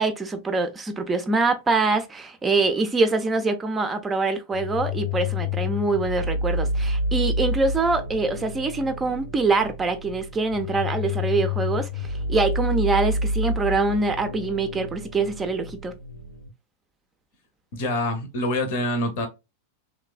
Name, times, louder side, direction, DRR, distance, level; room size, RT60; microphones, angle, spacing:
voice 1, 0.0-15.9, right 3 dB, 15° right, 0.4 m, -24 dB
sound 1, 4.5-16.5, left 2 dB, 85° right, 0.4 m, -29 dB
voice 2, 17.7-19.3, left 1 dB, 50° left, 0.7 m, -26 dB
3.1 x 2.1 x 2.3 m
figure-of-eight pair, 90°, 0 cm